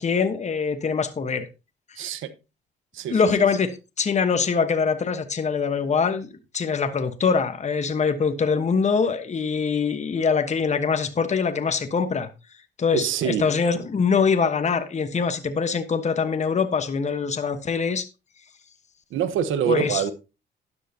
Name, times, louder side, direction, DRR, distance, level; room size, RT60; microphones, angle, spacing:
voice 1, 0.0-1.5 1.9-2.1 3.1-3.7 4.0-12.3 12.8-18.1 19.7-20.0, left 5 dB, 35° left, 1.2 m, -23 dB
voice 2, 2.0-2.3 2.9-3.2 12.9-13.4 19.1-20.1, right 8 dB, 85° right, 1.2 m, -25 dB
12.0 x 10.5 x 2.8 m
cardioid pair, 90°, 20 cm